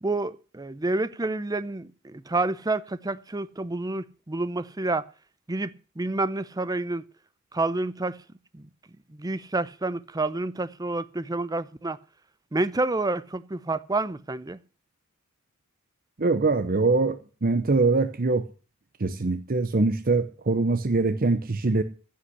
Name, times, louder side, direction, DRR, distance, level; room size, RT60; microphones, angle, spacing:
voice 1, 0.0-5.1 5.5-7.0 7.5-8.2 8.5-8.7 9.1-12.0 12.5-14.6, right 2 dB, 20° right, 0.6 m, -29 dB
voice 2, 16.2-18.4 19.0-21.8, right 3 dB, 45° right, 0.8 m, -23 dB
15.5 x 5.7 x 9.9 m
head